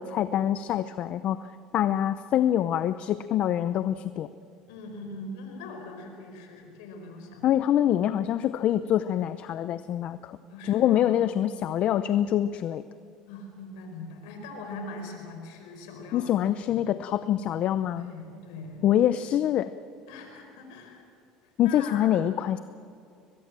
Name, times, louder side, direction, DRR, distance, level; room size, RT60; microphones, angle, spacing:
voice 1, 0.0-1.4 1.7-4.3 7.4-10.4 10.6-12.8 16.1-18.1 18.8-19.7 21.6-22.6, left 11 dB, 55° left, 13 dB, 0.7 m, -25 dB
voice 2, 4.7-7.6 10.5-11.3 13.3-16.3 16.7-16.8 18.0-18.9 20.1-21.0 21.4-22.1, left 2 dB, 85° left, 4 dB, 4.8 m, -42 dB
22.5 x 22.0 x 7.6 m, 2.5 s
supercardioid pair, 90°, 2 cm